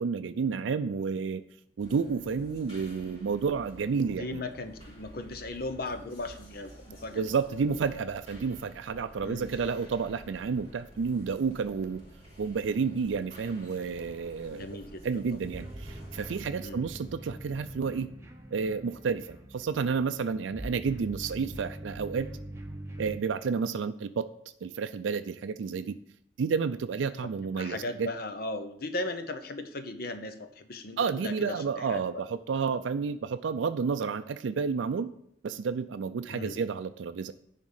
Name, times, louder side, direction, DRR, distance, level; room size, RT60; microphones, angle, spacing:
voice 1, 0.0-1.4 1.8-4.4 7.1-12.0 12.4-14.7 15.0-18.1 18.5-22.3 23.0-24.3 24.6-26.0 26.4-28.1 31.0-35.1 35.4-37.3, right 5 dB, 85° right, 10 dB, 0.4 m, -30 dB
sound 1, 1.8-16.4, right 1 dB, 35° left, 3.4 m, -51 dB
voice 2, 4.2-7.2 9.2-9.5 14.5-15.2 16.6-16.9 27.4-32.2 36.3-36.6, left 2 dB, 55° left, 8 dB, 0.9 m, -37 dB
sound 2, 15.4-23.2, right 1 dB, 15° right, 0.9 m, -43 dB
10.0 x 3.6 x 7.3 m, 0.72 s
head